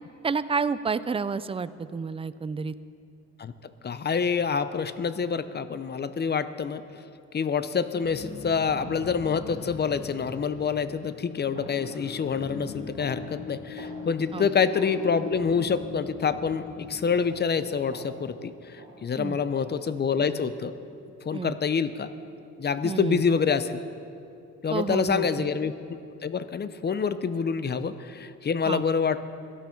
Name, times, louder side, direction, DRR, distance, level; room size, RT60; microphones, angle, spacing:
voice 1, 0.2-2.7 14.3-14.5 19.2-19.4 21.3-21.6 22.8-23.2 24.7-25.5 28.7-28.8, right 5 dB, 20° right, 15 dB, 0.4 m, -30 dB
voice 2, 3.8-6.8 7.3-20.7 21.3-22.1 22.6-23.8 24.6-29.3, left 6 dB, 35° left, 13 dB, 0.7 m, -27 dB
sound 1, 7.9-20.4, left 5 dB, 50° left, 1.8 m, -41 dB
sound 2, 10.8-11.0 11.5-11.8 12.3-12.5 13.0-13.2 13.8-14.0 14.7-14.9 15.5-15.7 16.3-16.5 17.2-17.4 17.9-18.2 18.8-19.0 19.7-19.9, right 2 dB, 40° right, 3.8 m, -47 dB
17.0 x 12.5 x 4.6 m, 2.6 s
cardioid pair, 90°, 30 cm